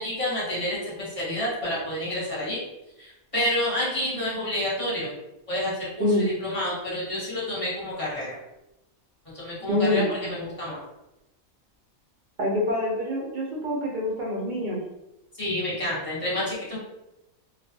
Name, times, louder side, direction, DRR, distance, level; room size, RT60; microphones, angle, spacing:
voice 1, 0.0-2.6 3.0-5.1 5.5-8.3 9.3-10.8 15.4-16.8, left 1 dB, 25° left, -8 dB, 0.9 m, -29 dB
voice 2, 9.7-10.1 12.4-14.8, left 1 dB, 70° right, -2 dB, 0.4 m, -25 dB
2.3 x 2.3 x 2.6 m, 0.92 s
omnidirectional pair, 1.5 m